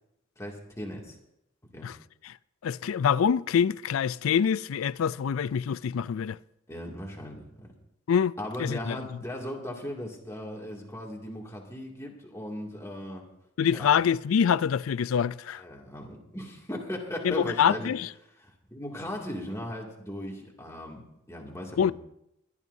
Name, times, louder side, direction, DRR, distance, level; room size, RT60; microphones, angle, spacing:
voice 1, 0.4-1.2 1.7-1.9 6.7-7.7 8.4-13.2 13.7-13.9 15.5-17.9 18.4-21.9, left 1 dB, 15° left, 2.4 m, -38 dB
voice 2, 2.6-6.4 8.1-9.0 13.6-15.6 17.2-18.1 21.8-21.9, left 7 dB, 90° left, 0.4 m, -25 dB
22.5 x 12.0 x 2.7 m
head